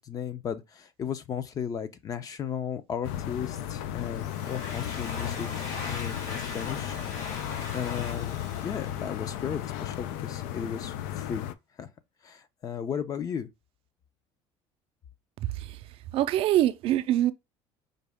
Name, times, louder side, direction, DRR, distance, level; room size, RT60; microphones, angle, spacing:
voice 1, 0.0-7.4 7.7-11.4 11.8-11.9 12.2-13.5, left 8 dB, 30° left, 0.5 m, -35 dB
sound 1, 3.0-11.5, left 11 dB, 90° left, 0.4 m, -35 dB
Domestic sounds home sounds, 4.0-9.6, left 4 dB, 65° left, 1.7 m, -40 dB
voice 2, 16.1-17.3, right 13 dB, 50° right, 0.4 m, -24 dB
5.2 x 2.2 x 3.5 m
cardioid pair, 140°, 12 cm